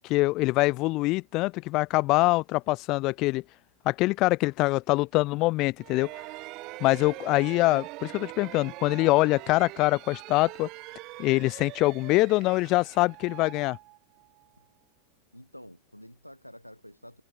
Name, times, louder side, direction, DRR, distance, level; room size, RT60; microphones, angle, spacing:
voice 1, 0.0-3.4 3.9-6.1 6.8-10.7 11.2-13.8, left 21 dB, 40° left, 0.4 m, -24 dB
sound 1, 5.8-14.5, right 22 dB, 40° right, 6.9 m, -43 dB
voice 2, 15.3-17.2, equal, 90° left, 4.1 m, -48 dB
figure-of-eight pair, 90°, 0 cm